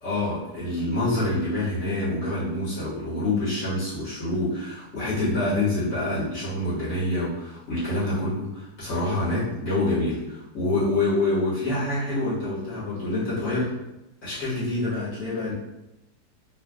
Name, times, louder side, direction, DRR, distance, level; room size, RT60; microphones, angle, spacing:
voice 1, 0.0-13.7 14.2-15.5, left 2 dB, 65° left, -11 dB, 2.0 m, -26 dB
3.9 x 2.4 x 2.3 m, 0.95 s
omnidirectional pair, 1.7 m